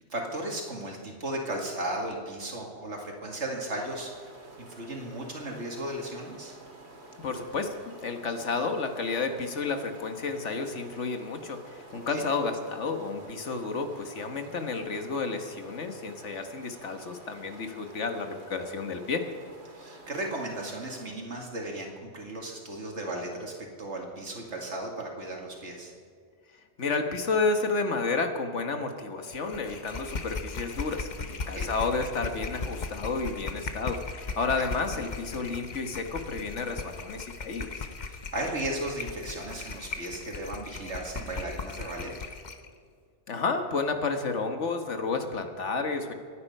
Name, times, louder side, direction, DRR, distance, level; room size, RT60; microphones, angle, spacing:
voice 1, 0.1-4.1 4.6-6.6 11.9-12.3 19.7-25.9 31.5-31.7 34.6-34.7 38.1-42.1, right 1 dB, 85° right, 0 dB, 2.5 m, -35 dB
sound 1, 3.8-21.1, right 2 dB, 65° right, 2.5 m, -50 dB
voice 2, 7.2-19.2 26.8-37.8 43.3-46.1, left 4 dB, 90° left, 6 dB, 1.7 m, -31 dB
sound 2, 29.3-42.7, left 4 dB, 45° left, 0.9 m, -38 dB
25.0 x 9.6 x 5.5 m, 2.1 s
omnidirectional pair, 1.2 m